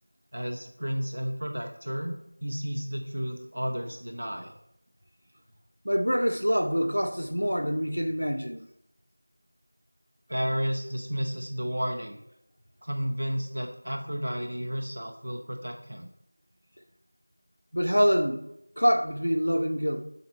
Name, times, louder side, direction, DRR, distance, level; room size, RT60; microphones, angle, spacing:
voice 1, 0.3-2.1 2.4-4.6 10.3-12.2 12.8-16.1, equal, 40° right, 0.6 m, -32 dB
voice 2, 5.8-8.7 17.7-18.5 18.8-20.0, equal, 85° right, 0.8 m, -25 dB
7.8 x 3.0 x 4.5 m
figure-of-eight pair, 175°, 0 cm